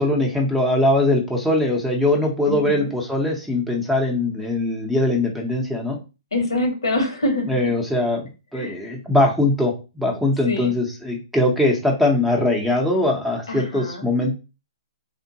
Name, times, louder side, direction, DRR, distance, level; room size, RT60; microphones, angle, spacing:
voice 1, 0.0-6.0 7.5-14.3, left 1 dB, ahead, -1 dB, 0.7 m, -21 dB
voice 2, 2.5-2.9 6.3-7.5 8.5-8.8 10.4-10.7 13.5-14.1, left 1 dB, 85° left, 4 dB, 1.1 m, -25 dB
3.5 x 2.1 x 2.7 m, 0.30 s
hypercardioid pair, 125°, 3 cm